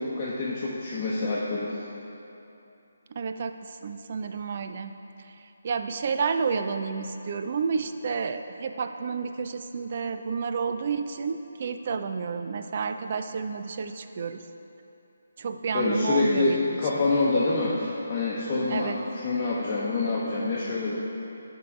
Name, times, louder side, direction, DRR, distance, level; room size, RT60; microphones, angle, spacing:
voice 1, 0.0-1.8 15.7-19.0 19.2-21.0, left 3 dB, 25° left, -8 dB, 0.9 m, -26 dB
voice 2, 3.1-14.4 15.4-16.8 18.7-19.0, right 5 dB, 45° right, 8 dB, 0.4 m, -30 dB
11.0 x 3.7 x 4.5 m, 2.9 s
figure-of-eight pair, 150°, 0 cm